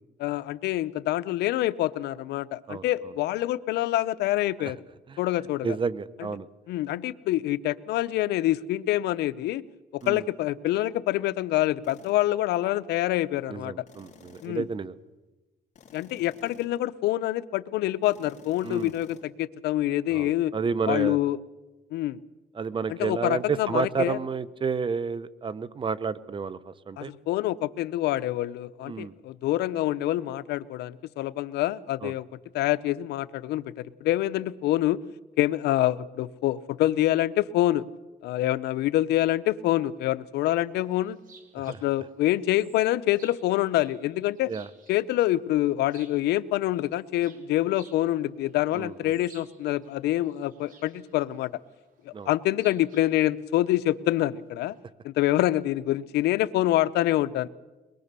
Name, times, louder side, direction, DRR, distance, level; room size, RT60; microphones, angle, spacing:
voice 1, 0.2-4.8 5.2-5.8 6.2-6.3 6.7-9.6 9.9-13.7 14.4-14.6 15.9-20.5 20.9-21.4 21.9-22.2 22.9-24.2 27.0-32.3 32.5-35.0 35.4-37.8 38.2-41.2 41.5-44.5 44.9-51.5 52.1-54.7 55.0-57.5, left 14 dB, 80° left, 16 dB, 0.8 m, -26 dB
voice 2, 5.6-6.5 10.0-10.2 13.5-14.9 18.6-18.9 20.1-21.2 22.5-27.1 28.9-29.1 32.0-32.1 41.6-41.8 44.5-44.7 48.7-49.1 52.1-52.3, right 5 dB, 30° right, 16 dB, 0.9 m, -30 dB
sound 1, 10.0-10.2 11.8-12.3 13.9-14.7 15.7-16.9 18.0-19.2, left 6 dB, 45° left, 3.3 m, -53 dB
sound 2, 40.7-54.8, right 5 dB, 55° right, 3.9 m, -59 dB
23.0 x 21.5 x 6.9 m, 1.1 s
cardioid pair, 110°, 17 cm